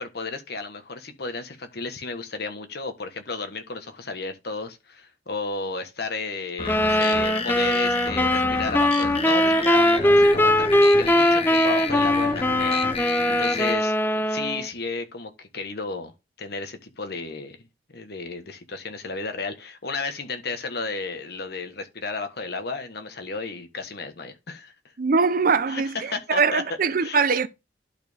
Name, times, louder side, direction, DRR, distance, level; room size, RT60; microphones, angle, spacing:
voice 1, 0.0-16.1 16.4-17.6 17.9-24.7 25.7-26.6 27.0-27.2, left 4 dB, 65° left, 1.3 m, -33 dB
sound 1, 6.6-13.7, left 4 dB, 35° left, 1.1 m, -30 dB
sound 2, 6.7-14.7, left 1 dB, 10° left, 0.6 m, -21 dB
voice 2, 25.0-27.5, right 5 dB, 55° right, 0.6 m, -22 dB
11.5 x 4.4 x 3.5 m
head